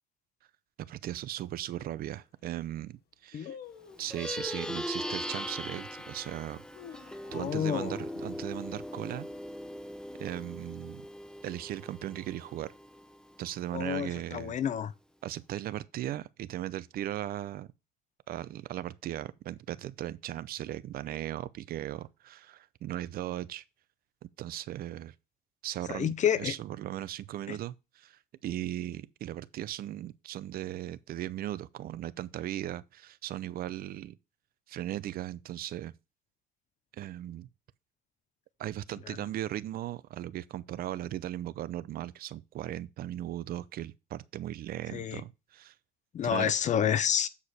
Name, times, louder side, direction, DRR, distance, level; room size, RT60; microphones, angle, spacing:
voice 1, 0.9-3.6 4.0-6.6 7.3-9.3 10.2-11.0 11.4-12.7 13.4-14.6 15.2-17.7 18.3-23.6 24.4-25.1 25.6-34.2 34.7-35.9 37.0-37.5 38.6-45.7 46.2-46.5, right 13 dB, 60° right, 0.6 m, -37 dB
sound 1, 1.4-1.5 2.1-2.2 2.4-2.8 3.4-4.2 4.9-5.3 5.9-6.0 6.5-7.6 7.9-8.0 8.3-8.7 9.1-9.5 10.1-10.9 11.1-11.2, left 8 dB, 70° left, 1.3 m, -49 dB
Plucked string instrument, 4.0-13.7, left 1 dB, 5° left, 0.8 m, -40 dB
voice 2, 7.2-8.0 13.7-14.9 25.9-26.5 27.5-27.6 39.1-39.2 44.9-45.2 46.1-47.3, left 9 dB, 45° left, 0.6 m, -29 dB
8.3 x 4.9 x 4.2 m
cardioid pair, 110°, 17 cm